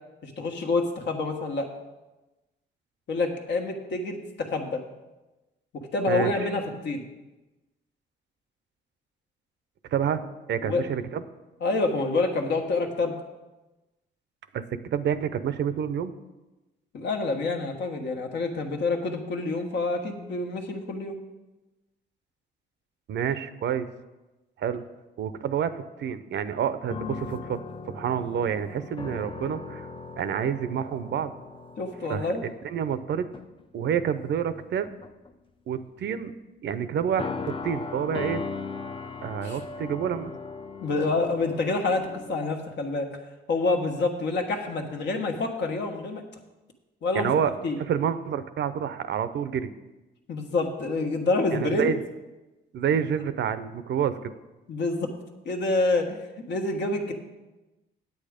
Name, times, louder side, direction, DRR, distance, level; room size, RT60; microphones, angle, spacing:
voice 1, 0.2-1.7 3.1-4.8 5.9-7.0 10.6-10.8 11.6-13.1 16.9-21.2 31.8-32.4 39.4-39.6 40.8-43.1 43.5-46.2 47.0-47.3 47.6-47.8 50.3-51.9 54.7-55.1 55.4-56.2 56.5-57.1, left 3 dB, 65° left, 3 dB, 1.4 m, -27 dB
voice 2, 9.9-10.2 10.5-11.2 14.5-16.1 23.1-23.9 24.6-24.8 25.2-27.6 27.9-29.9 30.2-31.3 32.1-33.3 33.7-34.9 35.7-36.3 36.6-38.4 39.2-40.3 47.1-47.5 47.9-49.7 51.5-52.0 52.7-54.3, right 8 dB, 65° right, 13 dB, 0.6 m, -28 dB
sound 1, 26.9-33.0 33.3-33.6 34.6-35.3 37.2-42.4, left 4 dB, 25° left, 0.6 m, -38 dB
8.6 x 8.3 x 5.1 m, 1.1 s
cardioid pair, 90°, 20 cm